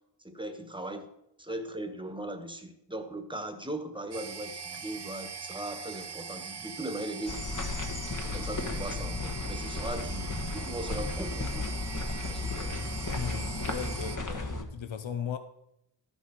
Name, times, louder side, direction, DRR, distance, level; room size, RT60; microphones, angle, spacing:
voice 1, 0.2-1.1 1.4-7.6 8.2-11.7 12.3-12.8, right 1 dB, 10° right, 6 dB, 1.3 m, -39 dB
sound 1, 4.1-14.2, right 6 dB, 60° right, 0.7 m, -41 dB
sound 2, 7.3-14.6, left 3 dB, 40° left, 1.4 m, -34 dB
voice 2, 13.0-15.4, left 8 dB, 75° left, 9 dB, 0.8 m, -37 dB
12.5 x 7.1 x 5.2 m, 0.80 s
wide cardioid pair, 60°, 45 cm